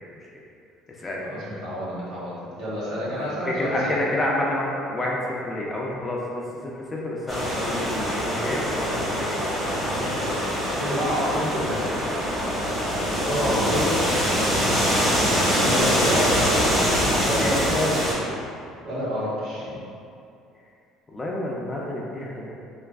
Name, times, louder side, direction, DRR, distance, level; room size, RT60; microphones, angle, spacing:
voice 1, 1.2-2.3 2.6-3.9 9.9-11.9 13.0-14.0 15.6-16.5 17.2-18.1 18.8-19.8, equal, 70° right, -9 dB, 1.1 m, -28 dB
voice 2, 3.5-6.4 6.7-9.4 12.8-13.0 13.3-13.7 14.8-15.3 17.3-17.5 21.1-22.5, left 1 dB, 15° left, -3 dB, 0.4 m, -29 dB
sound 1, 7.3-18.1, equal, 10° right, 0.8 m, -24 dB
3.4 x 2.3 x 2.3 m, 2.5 s
cardioid pair, 135°, 0 cm